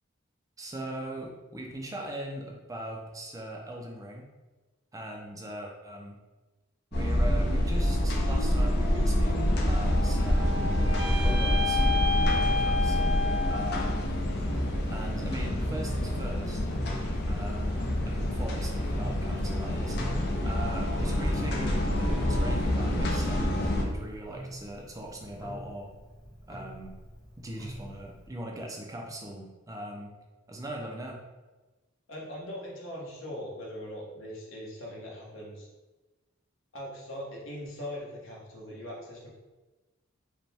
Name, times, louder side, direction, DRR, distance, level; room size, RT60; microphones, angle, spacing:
voice 1, 0.6-4.3 4.9-6.2 6.9-10.5 10.9-14.1 14.9-16.6 17.3-20.0 20.5-25.9 26.5-26.9 27.4-30.1 30.5-31.2, right 1 dB, 15° right, 0 dB, 0.4 m, -40 dB
sound 1, 6.9-23.8, left 1 dB, 50° left, 0.6 m, -27 dB
Clock, 9.8-28.3, equal, 20° left, 1.0 m, -46 dB
sound 2, 9.8-14.1, left 4 dB, 85° right, 0.8 m, -31 dB
voice 2, 32.1-35.7 36.7-39.3, equal, 70° left, -3 dB, 1.1 m, -40 dB
5.0 x 2.2 x 3.4 m, 1.2 s
head